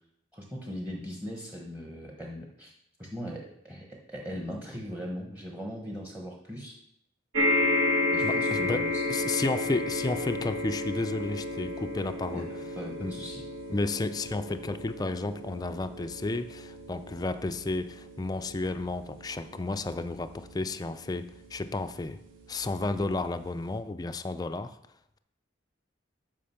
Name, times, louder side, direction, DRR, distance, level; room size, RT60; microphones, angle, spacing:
voice 1, 0.3-2.7 3.0-6.8 8.1-9.0 12.3-12.4 12.7-13.4, equal, 10° right, 0 dB, 1.1 m, -39 dB
sound 1, 7.3-21.9 22.6-22.7 23.0-23.1, left 2 dB, 90° right, 1.5 m, -32 dB
voice 2, 8.2-8.8 9.1-12.5 13.0-13.1 13.7-22.2 22.5-24.8, left 2 dB, 20° left, 10 dB, 0.4 m, -32 dB
8.6 x 5.4 x 5.7 m, 0.76 s
head